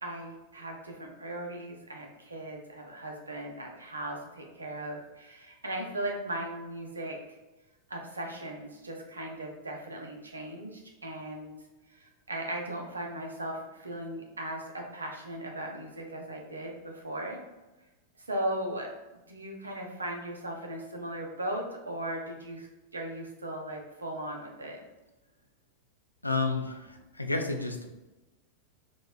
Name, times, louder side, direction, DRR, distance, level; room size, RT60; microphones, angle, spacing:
voice 1, 0.0-7.2 7.9-11.5 11.9-17.4 18.2-18.9 19.3-24.8, right 1 dB, 75° right, 1 dB, 0.5 m, -38 dB
voice 2, 26.2-27.9, left 3 dB, 85° left, 4 dB, 0.3 m, -31 dB
4.0 x 2.2 x 2.3 m, 1.1 s
figure-of-eight pair, 90°, 0 cm